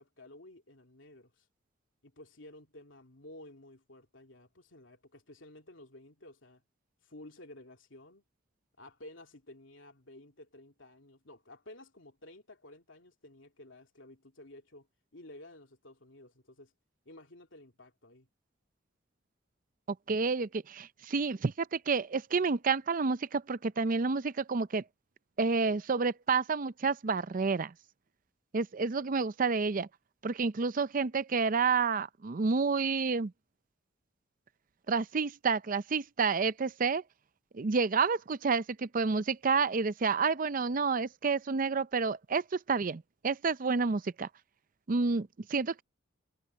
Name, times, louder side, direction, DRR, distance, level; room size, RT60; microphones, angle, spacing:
voice 1, 0.0-1.5 2.0-6.6 7.0-8.2 8.8-14.9 15.1-16.7 17.0-18.3, left 1 dB, 80° left, 3.0 m, -53 dB
voice 2, 20.1-24.8 25.4-27.7 28.5-29.9 30.2-33.3 34.9-37.0 37.5-44.3 44.9-45.8, right 4 dB, 45° right, 0.5 m, -29 dB
head